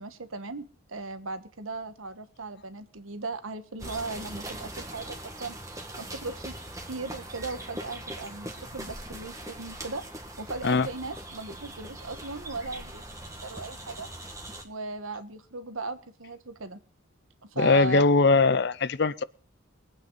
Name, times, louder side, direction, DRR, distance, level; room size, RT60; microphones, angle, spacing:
voice 1, 0.0-5.6 6.0-6.6 6.9-10.0 10.4-14.1 14.6-16.8 17.4-18.0, right 3 dB, 80° right, 1.3 m, -37 dB
sound 1, 3.8-14.6, right 1 dB, 15° right, 1.5 m, -41 dB
voice 2, 17.6-19.2, left 3 dB, 50° left, 0.5 m, -21 dB
23.0 x 8.8 x 4.0 m
head